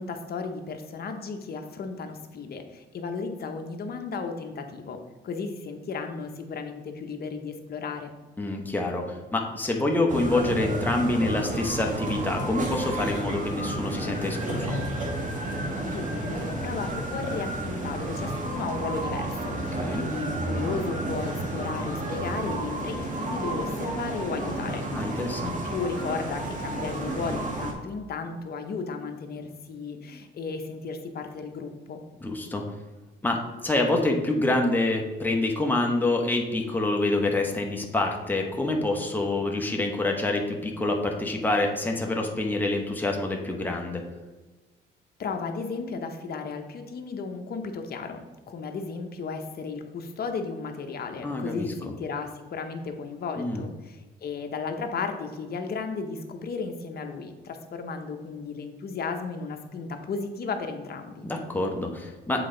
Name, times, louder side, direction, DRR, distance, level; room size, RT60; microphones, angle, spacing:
voice 1, 0.0-5.0 5.2-8.1 15.8-32.0 45.2-61.2, left 4 dB, 50° left, 5 dB, 0.8 m, -34 dB
voice 2, 8.4-14.8 19.8-20.1 24.9-25.6 32.2-32.6 33.2-44.0 51.2-51.7 53.4-53.6 61.2-62.5, left 2 dB, 10° left, 1 dB, 1.0 m, -26 dB
sound 1, 10.1-27.7, right 1 dB, 40° right, 1.6 m, -31 dB
7.7 x 3.8 x 3.8 m, 1.2 s
cardioid pair, 90°, 20 cm